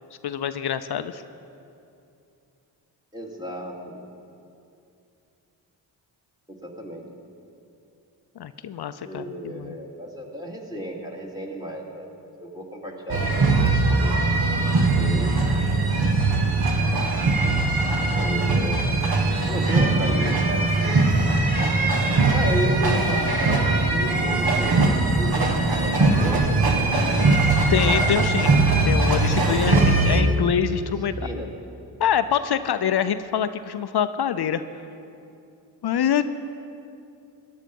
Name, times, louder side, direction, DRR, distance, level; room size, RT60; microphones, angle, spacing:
voice 1, 0.2-1.2 8.4-9.8 27.7-31.3 32.0-34.6 35.8-36.2, left 8 dB, 55° left, 11 dB, 0.6 m, -25 dB
voice 2, 3.1-4.0 6.5-7.0 9.0-12.1 12.4-14.2 14.9-15.4 18.2-19.0 19.5-21.0 22.3-27.0 29.3-30.4 31.2-31.5, equal, 10° right, 0 dB, 2.6 m, -33 dB
sound 1, 13.1-30.2, right 3 dB, 50° right, 1.5 m, -20 dB
15.5 x 10.5 x 5.4 m, 2.7 s
supercardioid pair, 45°, 46 cm